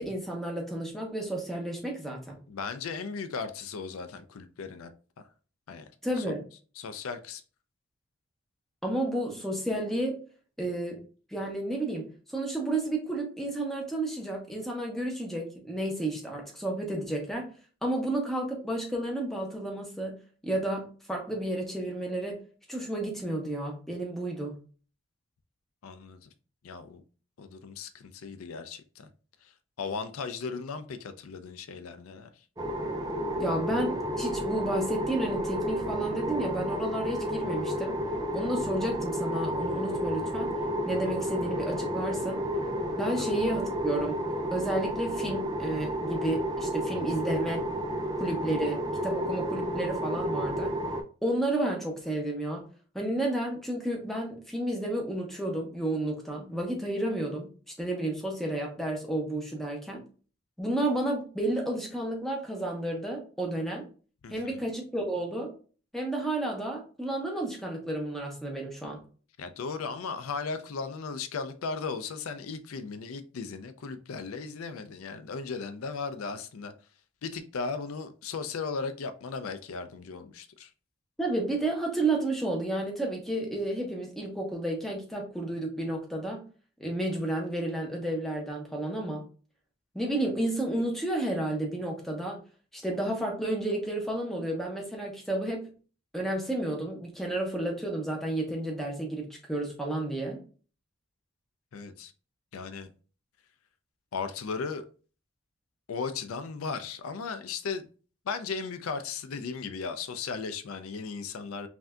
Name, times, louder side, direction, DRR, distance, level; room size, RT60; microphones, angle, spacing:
voice 1, 0.0-2.4 6.0-6.4 8.8-10.2 10.6-11.0 11.3-17.5 17.8-20.2 20.4-22.4 22.7-24.6 33.4-38.0 38.3-40.5 40.8-42.4 43.0-44.2 44.5-47.7 48.2-50.7 51.2-52.7 52.9-57.5 57.8-60.0 60.6-63.8 64.3-65.5 65.9-69.0 81.2-86.4 86.8-89.2 89.9-92.4 92.7-95.7 96.1-100.4, right 1 dB, ahead, 0.9 m, -31 dB
voice 2, 2.5-4.9 5.7-5.9 6.2-6.3 6.8-7.4 25.8-26.3 26.6-27.0 27.4-29.1 29.4-32.4 43.2-43.4 64.2-64.7 69.4-76.7 77.2-80.7 101.7-102.1 102.5-102.9 104.1-104.9 105.9-107.9 108.3-111.7, left 5 dB, 90° left, 0.4 m, -36 dB
sound 1, 32.6-51.0, equal, 20° right, 0.5 m, -31 dB
5.8 x 2.7 x 2.2 m
head